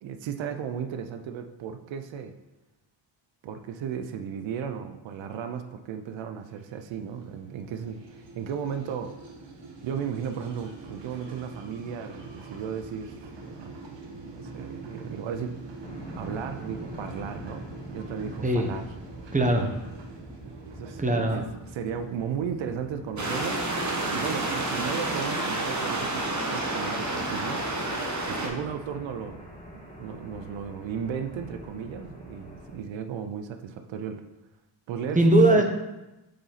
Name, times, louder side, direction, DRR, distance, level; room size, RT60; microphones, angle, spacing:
voice 1, 0.0-2.3 3.4-9.1 9.8-13.8 14.2-15.6 15.9-17.7 17.9-18.9 20.6-23.7 24.1-27.6 28.3-29.5 29.7-34.2 34.9-35.6, right 7 dB, 90° right, 8 dB, 0.6 m, -35 dB
sound 1, 6.5-23.1, right 3 dB, 70° right, 1.1 m, -45 dB
sound 2, 15.8-32.8, equal, 15° left, 1.4 m, -45 dB
voice 2, 19.3-19.7 21.0-21.4 35.2-35.6, right 1 dB, 15° right, 4 dB, 0.9 m, -20 dB
sound 3, 23.2-28.5, right 2 dB, 40° right, 1.3 m, -29 dB
6.5 x 4.1 x 4.1 m, 1.0 s
cardioid pair, 60°, 44 cm